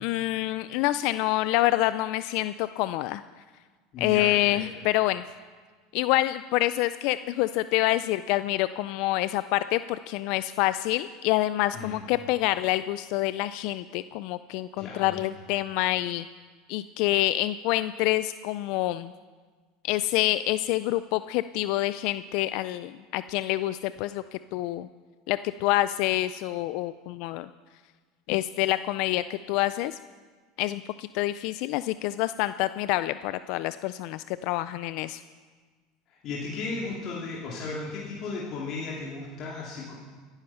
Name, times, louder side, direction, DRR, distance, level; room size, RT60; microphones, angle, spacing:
voice 1, 0.0-3.2 4.0-5.2 5.9-16.2 16.7-19.1 19.8-24.9 25.3-27.5 28.3-30.0 30.6-35.2, left 16 dB, 65° left, 14 dB, 0.4 m, -27 dB
voice 2, 3.9-4.6 11.7-12.0 14.8-15.2 36.1-39.9, left 3 dB, 45° left, -4 dB, 2.7 m, -35 dB
15.5 x 10.5 x 5.7 m, 1.5 s
supercardioid pair, 115°, 0 cm